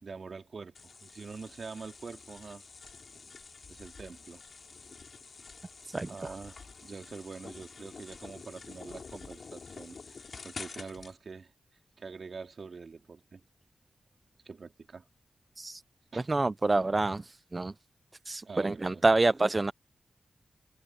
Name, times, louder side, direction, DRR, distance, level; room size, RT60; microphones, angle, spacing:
voice 1, 0.0-2.6 3.7-4.4 6.0-11.5 12.0-13.4 14.5-15.0 16.1-16.3 18.5-19.0, right 4 dB, 60° right, 3.4 m, -45 dB
sound 1, 0.7-11.1, left 4 dB, 60° left, 3.8 m, -48 dB
voice 2, 16.3-17.2 17.5-17.7 18.3-19.7, right 2 dB, 30° right, 0.4 m, -26 dB
wide cardioid pair, 85°, 0 cm